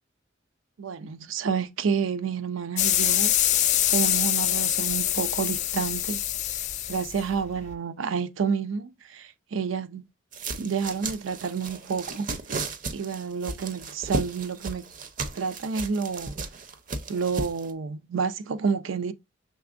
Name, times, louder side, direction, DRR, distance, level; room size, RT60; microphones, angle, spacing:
voice 1, 0.8-3.4 3.9-6.2 6.9-10.1 10.6-12.3 12.9-14.9 15.4-16.4 17.1-19.1, right 6 dB, 90° right, 0.5 m, -29 dB
sound 1, 2.8-7.7, left 12 dB, 40° left, 0.3 m, -25 dB
sound 2, 10.3-17.7, right 3 dB, 45° right, 0.6 m, -35 dB
6.0 x 3.4 x 2.4 m
head